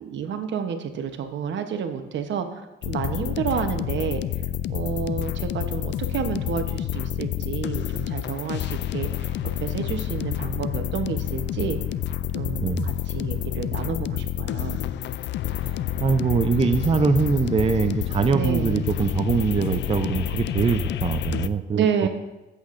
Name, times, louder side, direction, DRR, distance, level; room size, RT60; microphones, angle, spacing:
voice 1, 0.0-4.2 4.7-9.1 9.6-11.8 12.3-14.8 18.3-18.9 21.7-22.1, right 7 dB, 70° right, 7 dB, 0.9 m, -29 dB
sound 1, 2.8-21.5, left 11 dB, 65° left, 0.4 m, -29 dB
voice 2, 16.0-22.1, right 5 dB, 30° right, 8 dB, 0.5 m, -23 dB
14.0 x 8.1 x 2.6 m, 1.0 s
cardioid pair, 90°, 20 cm